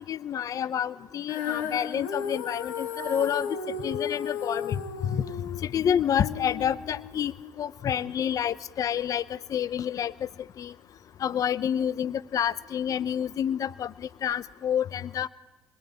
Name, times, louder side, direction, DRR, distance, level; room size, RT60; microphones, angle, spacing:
voice 1, 0.0-3.6 3.8-5.3 5.6-10.3 10.6-10.7 11.2-15.3, left 9 dB, 55° left, 17 dB, 0.8 m, -29 dB
Female singing, 1.3-7.5, left 7 dB, 85° left, 2.2 m, -34 dB
27.5 x 21.5 x 9.1 m, 1.2 s
hypercardioid pair, 55°, 7 cm